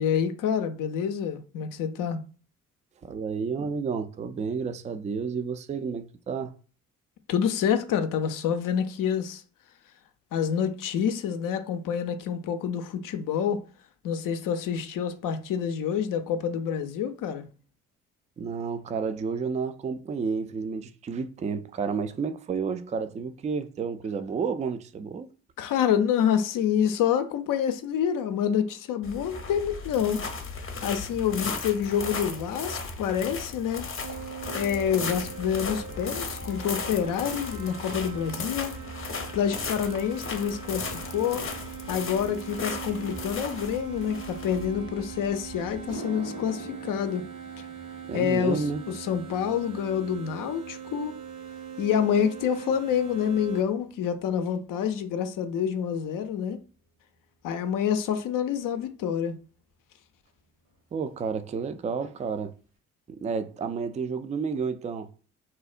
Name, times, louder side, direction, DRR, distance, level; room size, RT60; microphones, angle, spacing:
voice 1, 0.0-2.2 7.3-9.4 10.3-13.6 14.0-17.5 25.6-30.2 30.6-33.9 34.5-38.8 39.3-41.4 41.9-47.3 48.1-51.1 51.8-56.6 57.4-59.3, left 8 dB, 65° left, 0.5 m, -27 dB
voice 2, 3.0-6.5 18.4-25.3 48.1-48.8 60.9-62.5 63.1-65.1, right 5 dB, 20° right, 0.3 m, -31 dB
sound 1, 29.0-45.9, left 4 dB, 35° left, 0.7 m, -36 dB
sound 2, 34.0-53.6, right 8 dB, 60° right, 0.7 m, -41 dB
sound 3, 45.9-54.2 54.5-54.9 55.7-55.8 58.5-58.6 60.3-60.4 60.5-60.8 61.1-61.6 62.0-62.1 62.6-62.7, right 1 dB, 85° right, 1.3 m, -47 dB
2.7 x 2.0 x 2.4 m
hypercardioid pair, 45°, 36 cm